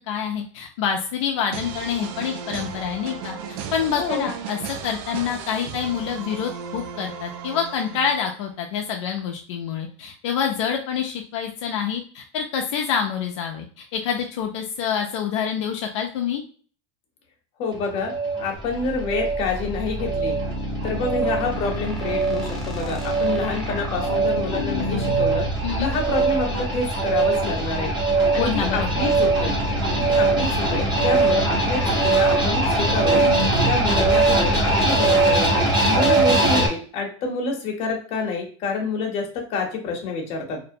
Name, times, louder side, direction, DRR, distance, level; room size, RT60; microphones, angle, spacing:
voice 1, 0.1-16.4 25.6-25.9 28.4-29.0, left 7 dB, 75° left, 2 dB, 0.4 m, -27 dB
sound 1, 1.5-8.5, right 7 dB, 55° right, 0.4 m, -35 dB
voice 2, 3.9-4.3 17.6-18.1 18.4-20.3 20.8-25.4 25.8-27.9 28.3-29.5 30.0-33.2 33.6-35.5 35.8-40.6, left 3 dB, 45° left, 1 dB, 0.8 m, -27 dB
sound 2, 17.7-36.7, right 2 dB, 30° right, 1.1 m, -22 dB
sound 3, 18.6-35.8, right 1 dB, ahead, 0.6 m, -30 dB
2.5 x 2.1 x 2.6 m, 0.42 s
supercardioid pair, 145°, 15 cm